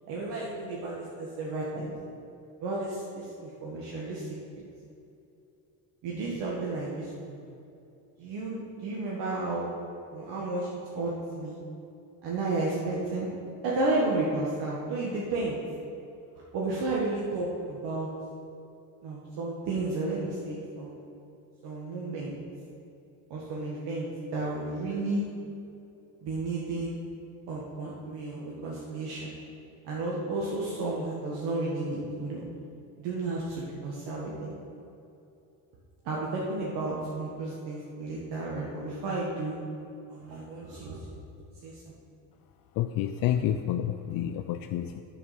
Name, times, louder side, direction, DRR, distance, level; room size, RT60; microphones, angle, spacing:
voice 1, 0.1-1.9 2.6-4.3 6.0-7.5 8.2-9.7 10.1-10.7 10.9-11.6 12.2-13.3 13.6-15.6 16.5-18.1 19.0-21.0 21.6-22.3 23.3-24.1 24.3-25.3 26.2-27.0 27.5-29.3 29.8-32.4 33.0-34.5 36.0-39.6 40.1-41.0 41.6-41.9, right 2 dB, 70° right, -5 dB, 1.6 m, -32 dB
voice 2, 42.8-45.0, left 11 dB, 60° left, 7 dB, 0.5 m, -29 dB
10.5 x 4.7 x 5.8 m, 2.8 s
cardioid pair, 115°, 41 cm